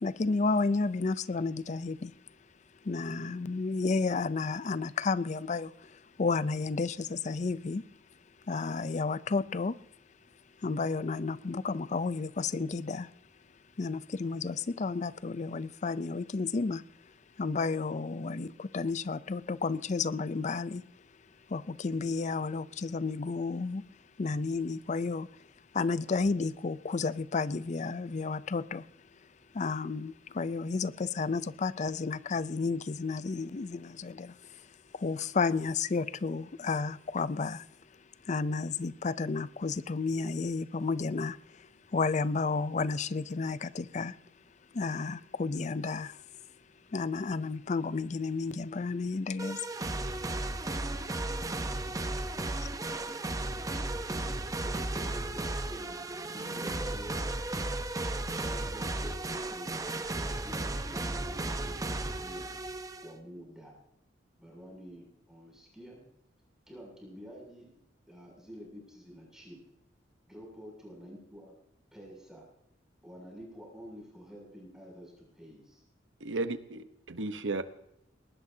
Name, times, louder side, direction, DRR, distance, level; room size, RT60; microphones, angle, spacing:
voice 1, 0.0-2.1 2.8-5.7 6.2-7.8 8.5-9.8 10.6-13.1 13.8-16.8 17.4-20.8 21.5-23.8 24.2-25.3 25.7-28.8 29.5-34.3 34.9-37.6 38.3-41.4 41.9-44.1 44.7-46.2 46.9-49.6, left 4 dB, 40° left, 0.5 m, -31 dB
sound 1, 49.4-63.1, right 2 dB, 20° right, 0.7 m, -35 dB
voice 2, 52.9-54.0 54.6-56.0 56.3-57.4 58.4-62.5 63.0-63.7 64.4-66.0 66.7-67.7 68.1-69.6 70.3-71.6 71.9-72.4 73.0-75.8, equal, 5° right, 7.3 m, -49 dB
voice 3, 76.2-77.6, right 2 dB, 90° right, 1.0 m, -34 dB
19.5 x 19.5 x 2.8 m
head